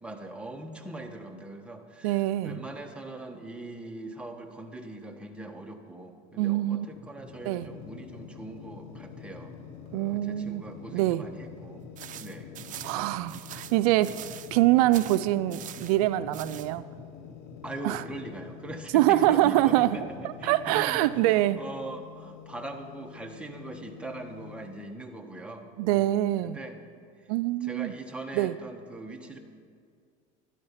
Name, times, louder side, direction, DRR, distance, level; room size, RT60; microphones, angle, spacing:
voice 1, 0.0-9.5 9.9-11.9 12.2-12.6 17.6-26.8 27.6-29.4, right 2 dB, 5° right, 3 dB, 1.3 m, -41 dB
voice 2, 2.0-2.6 6.4-6.9 7.5-7.7 9.9-10.6 10.9-11.2 12.8-14.2 14.5-16.8 17.8-18.0 18.9-20.0 20.2-21.6 25.8-26.6 27.3-27.9 28.3-28.6, right 15 dB, 85° right, 14 dB, 0.4 m, -24 dB
sound 1, 7.0-21.3, left 3 dB, 50° left, 3.4 m, -48 dB
sound 2, 7.6-24.8, left 12 dB, 75° left, 1.1 m, -49 dB
sound 3, 12.0-14.6 14.9-16.0 16.3-16.7, right 11 dB, 45° right, 0.6 m, -43 dB
12.0 x 11.5 x 5.7 m, 2.1 s
supercardioid pair, 105°, 19 cm